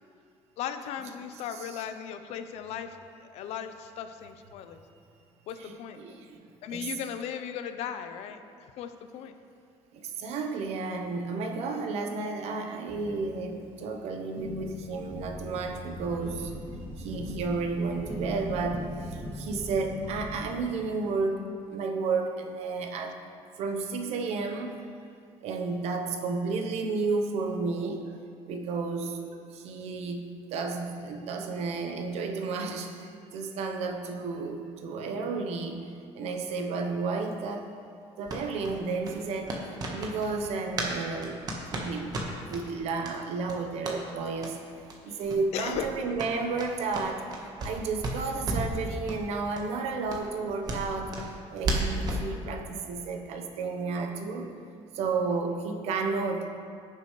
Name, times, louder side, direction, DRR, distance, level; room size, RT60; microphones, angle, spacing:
voice 1, 0.6-4.8 5.5-6.0 6.6-9.4 45.1-45.2 45.5-46.2, left 8 dB, 70° left, 9 dB, 0.7 m, -37 dB
voice 2, 1.5-1.9 5.6-6.2 6.7-6.9 9.9-16.5 17.0-18.9 19.3-23.1 23.6-24.8 25.4-28.0 28.5-29.2 29.5-35.8 36.1-37.7 38.2-39.6 39.9-41.4 41.7-42.1 42.5-44.6 45.0-47.3 47.6-51.1 51.5-54.5 54.9-56.5, right 4 dB, 70° right, 5 dB, 1.0 m, -32 dB
sound 1, 12.9-14.0 14.4-21.2, left 1 dB, 20° right, 1.8 m, -40 dB
sound 2, 38.2-40.9 41.2-42.6 43.0-43.1 43.4-44.0 44.4-44.5 44.9-45.0 45.2-45.4 45.7-47.8 48.0-48.8 49.1-49.2 49.5-49.6 50.1-52.2, right 2 dB, 35° right, 1.3 m, -33 dB
16.5 x 6.8 x 3.2 m, 2.3 s
cardioid pair, 155°, 11 cm